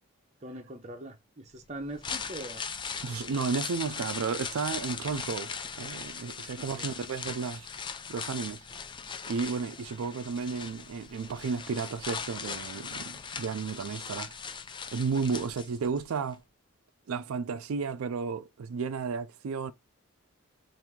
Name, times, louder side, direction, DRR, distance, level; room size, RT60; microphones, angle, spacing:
voice 1, 0.4-2.6 6.6-6.9, right 1 dB, 30° right, 0.7 m, -42 dB
sound 1, 1.8-16.0 16.3-16.4, left 6 dB, 20° left, 0.3 m, -39 dB
voice 2, 3.0-7.7 8.1-8.6 9.3-14.4 14.9-16.4 17.1-19.7, right 5 dB, 85° right, 0.4 m, -33 dB
4.5 x 2.6 x 3.5 m
head